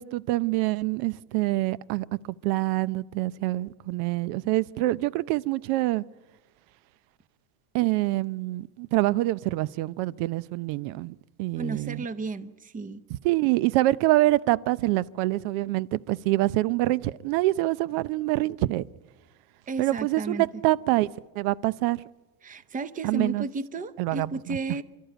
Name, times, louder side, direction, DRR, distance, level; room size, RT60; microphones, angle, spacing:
voice 1, 0.0-6.0 7.7-12.1 13.2-18.9 19.8-21.1 21.4-22.0 23.0-23.5 24.0-24.6, right 18 dB, 70° right, 0.8 m, -26 dB
voice 2, 11.6-13.0 19.7-20.5 22.4-24.8, right 3 dB, 15° right, 0.7 m, -33 dB
28.5 x 13.5 x 9.1 m
cardioid pair, 150°, 48 cm